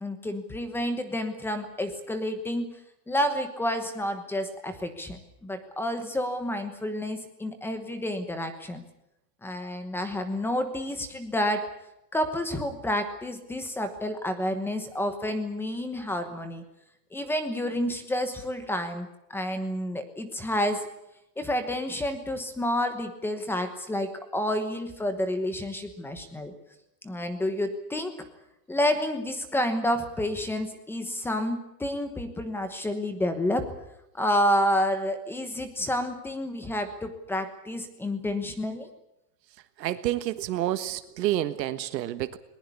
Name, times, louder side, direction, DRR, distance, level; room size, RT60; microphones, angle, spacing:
voice 1, 0.0-2.7 3.1-8.8 9.4-11.7 12.1-16.6 17.1-20.9 21.4-26.5 27.0-28.1 28.7-33.7 34.1-38.9, left 1 dB, 5° left, 9 dB, 1.1 m, -29 dB
voice 2, 39.8-42.4, right 13 dB, 80° right, 10 dB, 1.5 m, -29 dB
21.0 x 19.5 x 8.4 m, 0.86 s
supercardioid pair, 175°, 50 cm